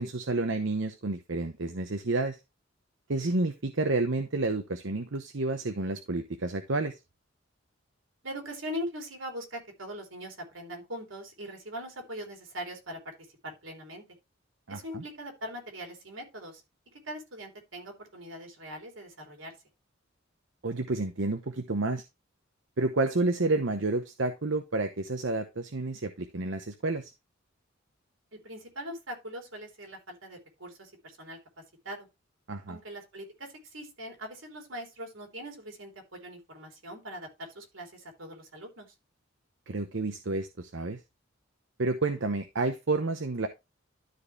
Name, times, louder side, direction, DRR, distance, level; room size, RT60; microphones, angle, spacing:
voice 1, 0.0-2.4 3.1-7.0 14.7-15.0 20.6-22.0 22.8-27.1 32.5-32.8 39.7-41.0 41.8-43.5, right 2 dB, 70° right, 0.9 m, -30 dB
voice 2, 8.2-14.0 14.7-16.6 16.9-19.5 28.3-31.4 31.8-32.1 32.7-38.9, equal, 90° right, 3.4 m, -41 dB
12.5 x 4.7 x 3.2 m
head